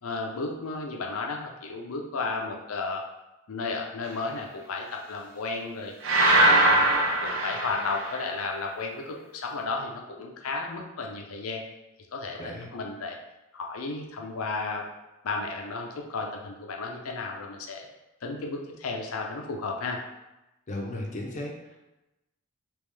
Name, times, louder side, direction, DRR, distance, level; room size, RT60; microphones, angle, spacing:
voice 1, 0.0-3.0 3.5-5.9 6.4-11.6 12.1-13.2 13.5-14.8 15.2-17.9 18.2-20.0, left 3 dB, 85° left, 1 dB, 0.6 m, -33 dB
sound 1, 6.0-8.3, right 1 dB, 65° right, 0.6 m, -22 dB
voice 2, 20.7-21.8, left 1 dB, 35° left, -1 dB, 0.6 m, -35 dB
3.5 x 3.0 x 3.2 m, 0.98 s
head